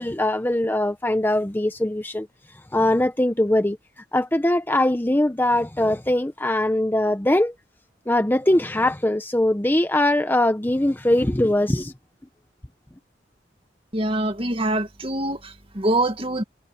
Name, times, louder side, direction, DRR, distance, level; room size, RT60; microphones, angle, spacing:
voice 1, 0.0-2.3 2.7-3.8 4.1-7.5 8.1-11.9, left 1 dB, 10° left, 0.7 m, -21 dB
voice 2, 13.9-16.4, right 1 dB, 30° right, 2.1 m, -24 dB
head